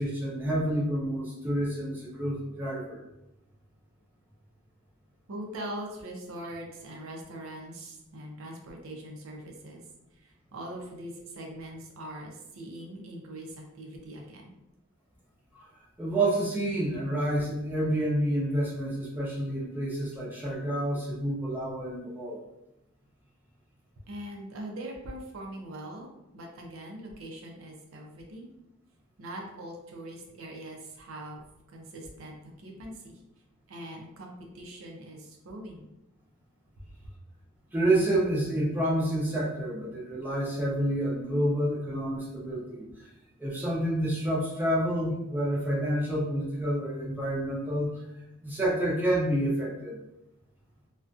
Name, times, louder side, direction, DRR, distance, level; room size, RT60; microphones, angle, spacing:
voice 1, 0.0-3.0 15.5-15.7 16.0-22.4 37.7-42.9 43.4-47.9 48.4-50.0, right 1 dB, 10° right, -6 dB, 0.5 m, -28 dB
voice 2, 5.3-9.8 10.2-14.5 24.1-28.5 29.2-31.4 31.7-33.2 33.7-35.9, right 1 dB, 85° right, 0 dB, 0.5 m, -42 dB
2.4 x 2.2 x 2.5 m, 0.88 s
head